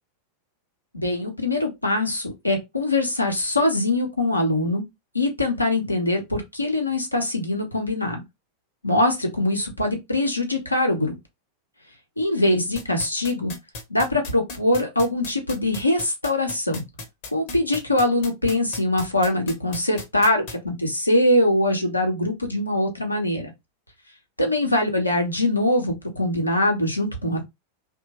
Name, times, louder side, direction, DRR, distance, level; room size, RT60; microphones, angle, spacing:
voice 1, 0.9-4.8 5.1-8.2 8.8-11.2 12.2-13.5 13.9-16.8 17.3-23.5 24.4-27.5, left 1 dB, 85° left, 0.8 m, -23 dB
sound 1, 12.8-20.5, left 3 dB, 45° left, 0.8 m, -35 dB
2.9 x 2.1 x 2.8 m
figure-of-eight pair, 90°, 0 cm